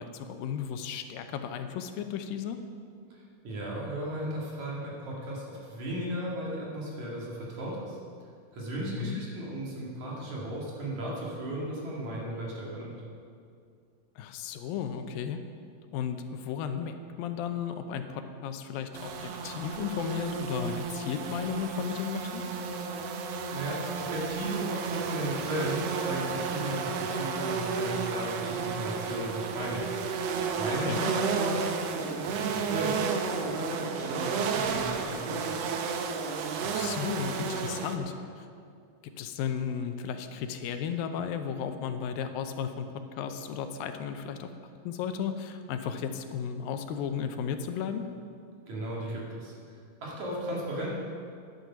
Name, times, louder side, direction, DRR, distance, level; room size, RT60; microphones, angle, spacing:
voice 1, 0.0-2.6 8.8-9.2 14.2-15.4 15.9-22.4 30.8-31.1 36.6-38.5 39.0-42.9 43.1-44.5 44.8-48.0, left 7 dB, 85° left, 7 dB, 2.5 m, -34 dB
voice 2, 3.1-8.0 8.5-12.9 23.5-29.8 30.6-33.1 33.4-35.6 48.7-49.5 50.0-50.9, right 1 dB, 60° right, -4 dB, 3.2 m, -35 dB
sound 1, 18.9-38.0, right 5 dB, 80° right, 1.4 m, -32 dB
11.5 x 9.7 x 6.0 m, 2.3 s
omnidirectional pair, 4.0 m